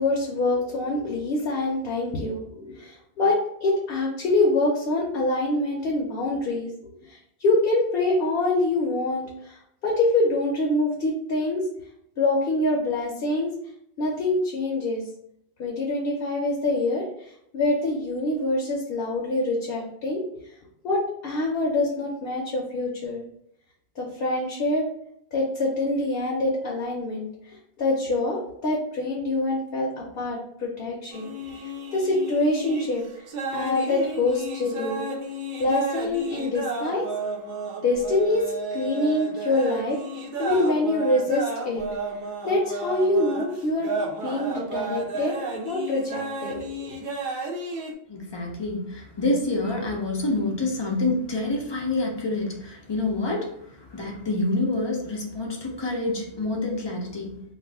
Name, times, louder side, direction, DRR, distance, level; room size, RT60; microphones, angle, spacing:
voice 1, 0.0-6.7 7.1-11.7 12.2-13.5 14.0-15.0 15.6-20.2 20.8-23.2 24.0-24.9 25.3-31.3 31.6-33.2 33.5-35.0 35.6-37.1 37.8-38.4 38.7-40.0 40.4-41.8 42.4-43.9 44.2-45.4 45.6-46.9, left 2 dB, 65° left, -1 dB, 0.8 m, -25 dB
sound 1, 31.1-47.9, right 2 dB, 60° right, 0.6 m, -32 dB
voice 2, 48.1-57.4, left 2 dB, 40° left, 0 dB, 0.4 m, -27 dB
2.4 x 2.3 x 3.4 m, 0.72 s
omnidirectional pair, 1.1 m